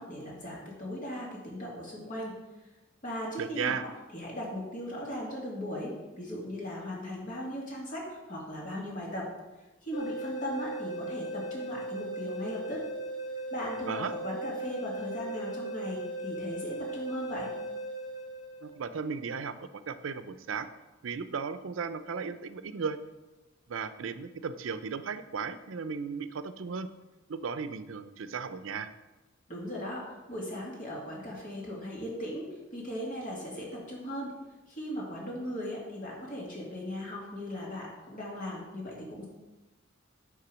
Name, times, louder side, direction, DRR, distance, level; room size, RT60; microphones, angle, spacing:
voice 1, 0.0-2.3 3.0-9.3 9.8-12.9 13.5-17.5 29.5-34.3 34.7-39.3, equal, 40° left, -3 dB, 2.5 m, -38 dB
voice 2, 3.4-3.8 13.9-14.1 18.6-20.7 21.0-23.0 23.7-26.9 27.3-28.9, right 5 dB, 80° right, 12 dB, 0.5 m, -35 dB
sound 1, 9.9-18.9, right 1 dB, 65° left, 0.9 m, -38 dB
9.7 x 3.7 x 6.2 m, 1.1 s
head